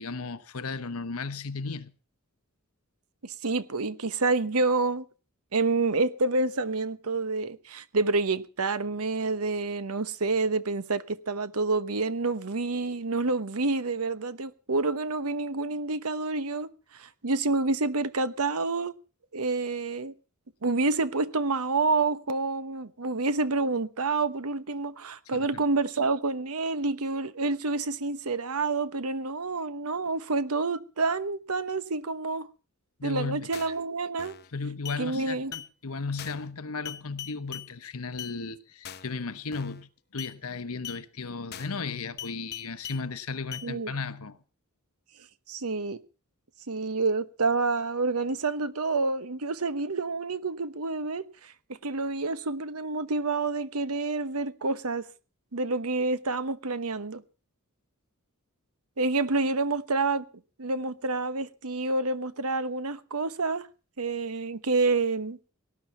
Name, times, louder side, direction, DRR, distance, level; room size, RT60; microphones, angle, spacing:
voice 1, 0.0-1.9 25.3-25.6 33.0-33.5 34.5-44.4, left 4 dB, 80° left, 1.1 m, -35 dB
voice 2, 3.2-5.0 5.5-18.9 19.3-20.1 20.6-32.5 33.0-34.3 35.0-35.5 43.6-44.0 45.5-46.0 46.7-55.1 55.5-57.2 59.0-60.3 60.6-63.7 64.0-65.4, right 3 dB, 85° right, 1.1 m, -28 dB
sound 1, 33.5-33.8 34.2-34.5 34.9-35.0 35.5-35.7 36.2-36.5 36.9-37.7 38.2-38.3 38.8-39.2 39.5-39.8 40.2-40.3 40.8-41.0 41.5-41.8 42.2-43.0 43.5-43.7, left 10 dB, 45° left, 0.9 m, -40 dB
18.5 x 11.0 x 5.7 m
head